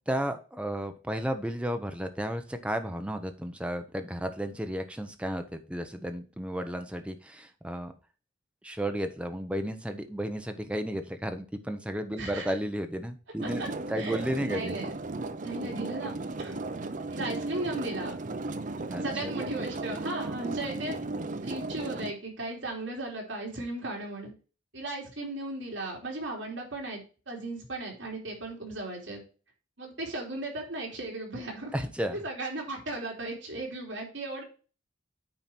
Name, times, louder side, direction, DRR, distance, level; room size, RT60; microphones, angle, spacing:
voice 1, 0.1-7.9 8.6-13.6 13.9-14.7 18.9-19.3 31.7-32.2, equal, 5° right, 7 dB, 0.9 m, -33 dB
voice 2, 12.2-12.5 13.6-13.7 14.0-14.9 15.4-16.6 17.1-18.1 19.0-21.0 21.4-24.3 24.7-29.2 29.8-31.7 32.1-34.4, right 2 dB, 65° right, 0 dB, 3.2 m, -36 dB
sound 1, 13.4-22.1, right 2 dB, 40° right, 0.6 m, -35 dB
8.9 x 4.5 x 4.4 m, 0.35 s
head